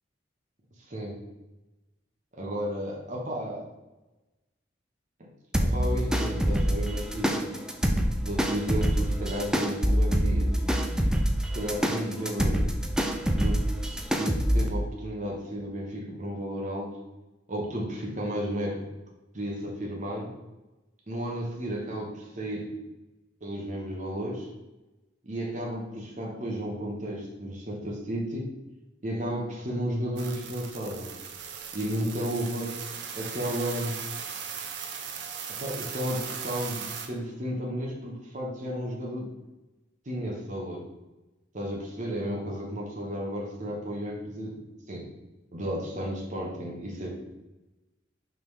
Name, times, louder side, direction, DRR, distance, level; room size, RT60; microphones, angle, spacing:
voice 1, 0.9-1.2 2.3-3.7 5.2-5.3 5.6-7.6 8.2-10.6 11.4-12.7 13.3-13.7 14.1-17.0 17.5-18.9 19.3-20.3 21.1-22.8 23.4-24.5 25.2-28.4 29.0-31.1 31.7-32.8 33.1-34.0 35.6-39.3 40.0-40.9 41.5-44.6 44.9-45.1 45.5-47.1, equal, 40° right, -2 dB, 1.1 m, -33 dB
sound 1, 5.5-14.7, equal, 5° right, 0.4 m, -26 dB
sound 2, 30.2-37.1, right 7 dB, 60° right, 0.7 m, -38 dB
5.3 x 3.8 x 4.8 m, 1.1 s
head